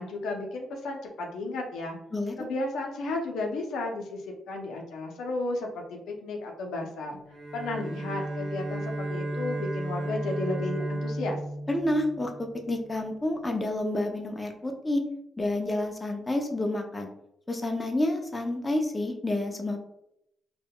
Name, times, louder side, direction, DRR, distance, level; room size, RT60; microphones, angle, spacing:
voice 1, 0.0-2.0 2.4-7.2 7.5-11.4, left 2 dB, 80° left, 1 dB, 0.5 m, -33 dB
Bowed string instrument, 7.3-12.7, right 1 dB, 45° right, 0.9 m, -34 dB
voice 2, 11.7-15.0 15.4-17.1 17.5-19.8, left 1 dB, 20° left, 3 dB, 0.5 m, -29 dB
3.5 x 2.1 x 2.2 m, 0.79 s
supercardioid pair, 65°, 0 cm